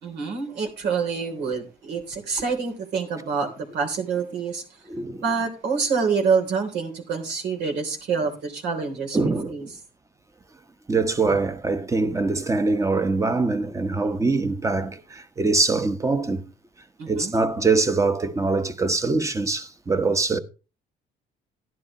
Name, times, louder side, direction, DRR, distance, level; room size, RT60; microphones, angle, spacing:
voice 1, 0.0-4.6 5.2-9.2 9.5-9.6 17.0-17.3, right 5 dB, 80° right, 3.3 m, -26 dB
voice 2, 4.9-5.2 9.1-9.7 10.9-16.4 17.1-20.4, right 3 dB, 20° right, 1.2 m, -23 dB
12.5 x 11.0 x 3.0 m
cardioid pair, 110°, 17 cm